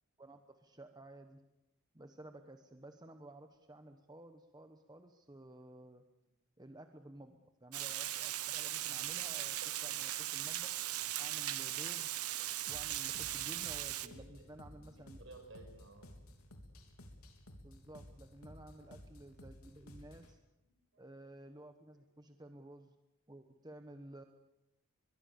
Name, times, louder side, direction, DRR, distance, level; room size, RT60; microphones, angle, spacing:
voice 1, 0.2-1.5 1.9-6.1 6.6-10.8 11.2-12.2 12.7-15.2 17.6-20.4 21.0-22.9 23.3-24.2, right 1 dB, 20° right, 7 dB, 1.1 m, -54 dB
Water, 7.7-14.1, right 13 dB, 85° right, 1.1 m, -38 dB
sound 1, 12.7-20.3, left 1 dB, 80° left, 3.6 m, -55 dB
voice 2, 14.0-16.3 18.5-18.7 20.6-21.0 21.9-22.0, right 2 dB, 55° right, 5 dB, 6.2 m, -58 dB
23.5 x 22.5 x 7.0 m, 0.92 s
head